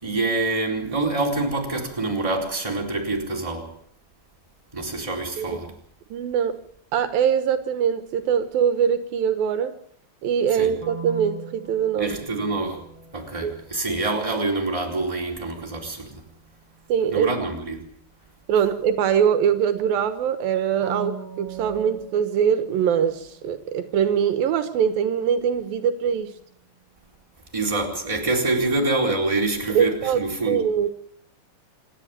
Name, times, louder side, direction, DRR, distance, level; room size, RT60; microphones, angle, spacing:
voice 1, 0.0-3.7 4.7-5.7 10.5-10.7 12.0-12.8 13.1-16.2 17.1-17.8 27.5-30.6, right 2 dB, 10° right, 4.0 m, -26 dB
voice 2, 6.1-6.6 6.9-9.7 10.2-12.2 13.4-13.5 16.9-17.3 18.5-26.3 29.7-30.2 30.5-30.9, right 8 dB, 80° right, 2.9 m, -22 dB
sound 1, 10.8-14.6 20.8-23.6 24.1-26.4, right 4 dB, 40° right, 4.1 m, -40 dB
27.0 x 11.0 x 8.9 m
omnidirectional pair, 4.2 m